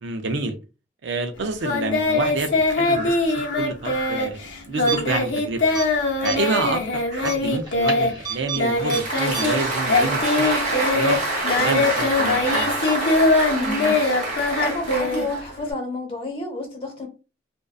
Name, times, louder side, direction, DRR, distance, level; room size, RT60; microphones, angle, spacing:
voice 1, 0.0-0.6 1.0-5.6 6.2-11.2 11.6-12.7, right 3 dB, 75° right, 0.5 m, -28 dB
Singing, 1.6-9.6 9.9-15.7, left 2 dB, 85° left, 0.7 m, -22 dB
sound 1, 4.9-5.4 5.7-5.9 6.3-6.6 7.2-8.6 8.9-9.0 9.3-9.4, right 5 dB, 20° right, 0.9 m, -30 dB
Applause, 8.6-15.7, right 2 dB, 45° right, 0.9 m, -26 dB
voice 2, 13.5-14.2 14.4-17.1, left 2 dB, 30° left, 0.9 m, -30 dB
2.6 x 2.2 x 2.3 m
head